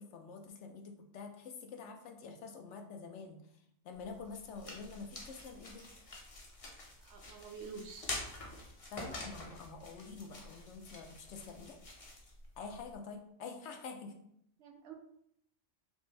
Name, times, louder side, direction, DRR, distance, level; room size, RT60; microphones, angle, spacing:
voice 1, 0.0-3.4 3.8-6.1 8.9-11.8 12.6-14.1, left 4 dB, 75° left, 4 dB, 0.9 m, -47 dB
sound 1, 3.9-12.9, left 2 dB, 35° left, 0.6 m, -47 dB
voice 2, 7.0-8.1 14.6-14.9, right 5 dB, 70° right, 3 dB, 0.9 m, -48 dB
5.1 x 2.1 x 3.2 m, 0.72 s
omnidirectional pair, 1.2 m